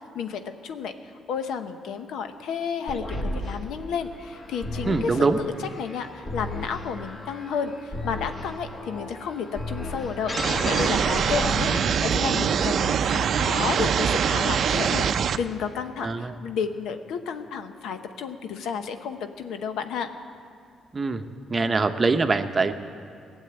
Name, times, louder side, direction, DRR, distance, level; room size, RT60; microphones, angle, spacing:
voice 1, 0.1-0.9 1.3-10.4 10.7-20.1, left 6 dB, 85° left, 8 dB, 0.9 m, -31 dB
sound 1, 2.9-12.3, left 1 dB, 35° left, 1.7 m, -34 dB
voice 2, 4.9-5.4 16.0-16.3 20.9-21.2 21.5-22.7, right 3 dB, 30° right, 8 dB, 0.8 m, -23 dB
sound 2, 10.4-15.4, right 7 dB, 60° right, 0.5 m, -23 dB
17.5 x 7.4 x 8.6 m, 2.5 s
cardioid pair, 90°, 0 cm